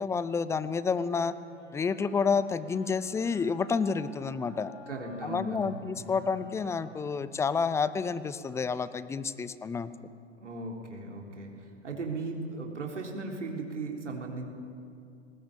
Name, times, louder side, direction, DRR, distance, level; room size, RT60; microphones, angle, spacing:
voice 1, 0.0-1.3 1.7-4.7 5.2-10.1, left 5 dB, 10° left, 15 dB, 0.5 m, -29 dB
Wind instrument woodwind instrument, 1.1-8.6, left 2 dB, 85° left, 6.1 m, -52 dB
voice 2, 4.9-6.2 10.4-14.4, right 3 dB, 80° right, 0 dB, 3.8 m, -37 dB
20.0 x 18.5 x 8.7 m, 2.4 s
figure-of-eight pair, 105°, 35 cm